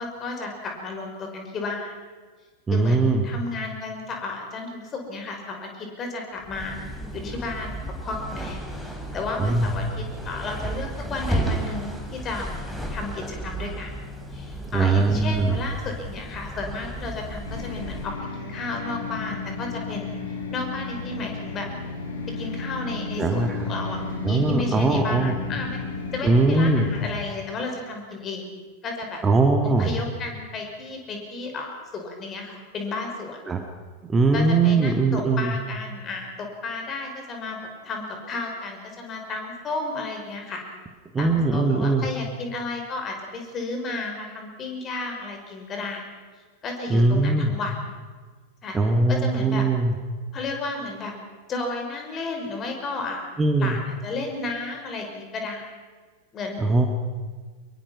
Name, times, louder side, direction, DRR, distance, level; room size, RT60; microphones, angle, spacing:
voice 1, 0.0-1.9 2.7-6.8 7.1-13.9 14.3-20.1 20.5-21.7 22.4-25.8 26.1-28.5 28.8-29.2 29.8-33.4 34.3-40.6 41.2-46.0 46.6-47.7 48.6-48.8 49.1-49.7 50.3-51.1 51.5-53.3 53.6-55.7 56.3-56.6, left 3 dB, 25° left, 3 dB, 5.5 m, -33 dB
voice 2, 2.7-3.2 9.4-9.7 14.7-15.6 23.2-23.6 24.2-25.4 26.2-26.9 29.2-29.9 33.5-33.6 34.1-35.6 41.1-42.1 46.9-47.5 48.7-49.9 53.4-53.8 56.6-56.9, right 3 dB, 15° right, 5 dB, 1.7 m, -20 dB
sound 1, 6.4-18.2, right 1 dB, ahead, 3.8 m, -33 dB
sound 2, 17.4-27.1, left 3 dB, 65° left, 6.2 m, -33 dB
24.0 x 22.0 x 6.1 m, 1.5 s
figure-of-eight pair, 90°, 0 cm